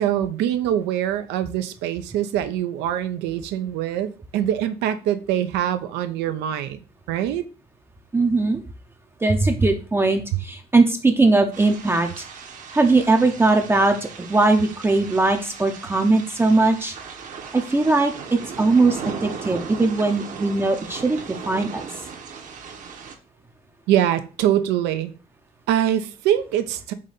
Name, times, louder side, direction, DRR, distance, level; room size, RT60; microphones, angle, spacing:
voice 1, 0.0-6.8 7.1-7.5 23.9-25.1 25.7-26.9, right 11 dB, 90° right, 0.5 m, -23 dB
voice 2, 8.1-8.6 9.2-12.2 12.7-16.9 17.5-21.2 21.5-21.8, right 3 dB, 15° right, 0.5 m, -20 dB
sound 1, 11.5-23.2, right 6 dB, 50° right, 0.8 m, -37 dB
4.9 x 2.7 x 3.9 m
cardioid pair, 110°, 17 cm